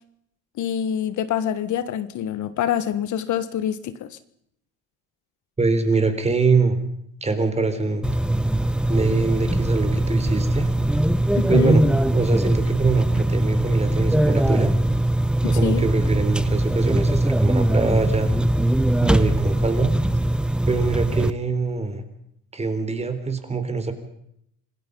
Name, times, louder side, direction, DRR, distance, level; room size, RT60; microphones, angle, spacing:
voice 1, 0.6-4.2 11.4-11.8 15.4-15.9, left 9 dB, 55° left, 1.4 m, -26 dB
voice 2, 5.6-6.8 7.2-8.0 8.9-10.7 11.5-11.8 12.1-14.7 15.4-18.3 19.0-19.9 20.7-22.0 22.5-23.9, right 4 dB, 20° right, 3.9 m, -23 dB
sound 1, 8.0-21.3, right 1 dB, 5° right, 0.9 m, -21 dB
27.0 x 19.0 x 5.4 m
cardioid pair, 115°, 35 cm